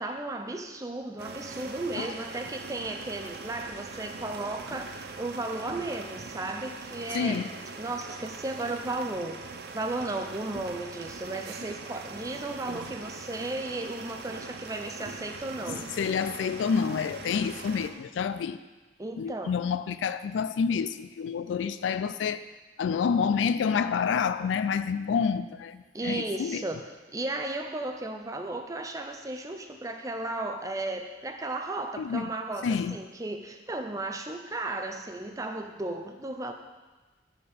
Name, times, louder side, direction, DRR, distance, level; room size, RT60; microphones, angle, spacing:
voice 1, 0.0-7.5 7.8-15.8 19.0-19.5 25.9-26.8 27.1-36.5, right 2 dB, 20° right, 5 dB, 0.5 m, -35 dB
sound 1, 1.2-17.9, right 3 dB, 55° right, 0.6 m, -41 dB
voice 2, 7.1-7.5 16.0-18.6 19.2-22.4 22.8-26.6 32.0-32.3 32.6-33.0, left 6 dB, 80° left, 13 dB, 0.3 m, -28 dB
7.5 x 4.3 x 6.6 m, 1.2 s
head